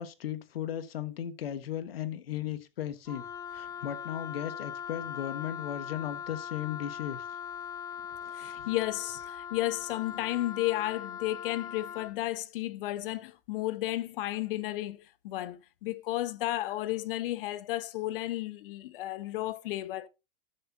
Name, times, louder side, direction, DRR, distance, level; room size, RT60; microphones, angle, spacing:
voice 1, 0.0-3.2 3.5-7.2 8.1-8.6, left 10 dB, 85° left, 1.4 m, -36 dB
Wind instrument woodwind instrument, 3.1-12.1, left 8 dB, 10° left, 0.7 m, -40 dB
voice 2, 8.3-20.1, left 16 dB, 70° left, 1.1 m, -33 dB
12.5 x 7.7 x 2.7 m
hypercardioid pair, 110°, 29 cm